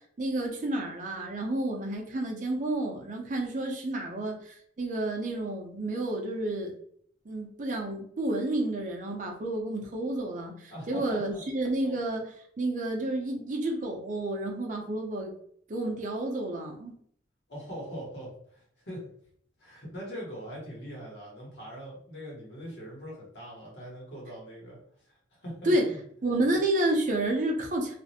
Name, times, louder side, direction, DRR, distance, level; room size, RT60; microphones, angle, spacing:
voice 1, 0.2-6.7 7.3-15.3 15.7-16.9 25.6-25.9 26.2-28.0, right 1 dB, 40° right, 1 dB, 0.5 m, -30 dB
voice 2, 10.7-11.4 17.5-19.0 19.6-24.8 25.0-26.0, equal, 65° left, -4 dB, 1.1 m, -42 dB
2.4 x 2.0 x 2.7 m, 0.63 s
head